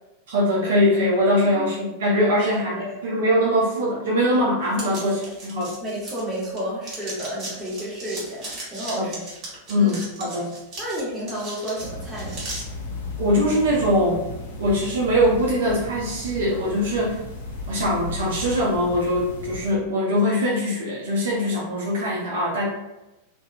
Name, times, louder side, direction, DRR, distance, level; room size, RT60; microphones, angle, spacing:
voice 1, 0.3-5.7 8.9-9.2 9.7-10.5 13.2-14.3 14.6-17.2 17.7-22.7, equal, 60° right, -3 dB, 0.6 m, -22 dB
voice 2, 2.4-3.0 5.8-9.1 9.8-9.9 10.8-12.4, equal, 5° right, -8 dB, 1.1 m, -31 dB
sound 1, 4.7-6.6 6.8-12.6, right 2 dB, 30° right, 1.2 m, -37 dB
sound 2, 11.8-19.7, left 2 dB, 55° left, 0.6 m, -35 dB
2.7 x 2.1 x 2.4 m, 0.98 s
figure-of-eight pair, 90°, 0 cm